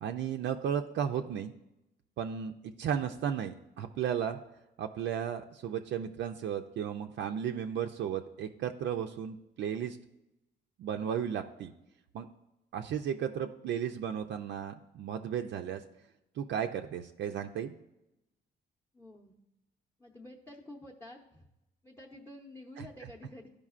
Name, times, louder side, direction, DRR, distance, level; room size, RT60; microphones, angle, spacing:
voice 1, 0.0-1.5 2.2-2.5 2.8-4.4 4.8-10.0 10.8-11.7 12.1-12.3 12.7-15.8 16.4-17.8 22.8-22.9, right 8 dB, 65° right, 5 dB, 0.4 m, -34 dB
voice 2, 18.9-19.3 20.0-21.5 21.8-23.5, left 1 dB, 10° left, -1 dB, 0.7 m, -49 dB
12.0 x 5.0 x 2.4 m, 0.90 s
cardioid pair, 90°, 20 cm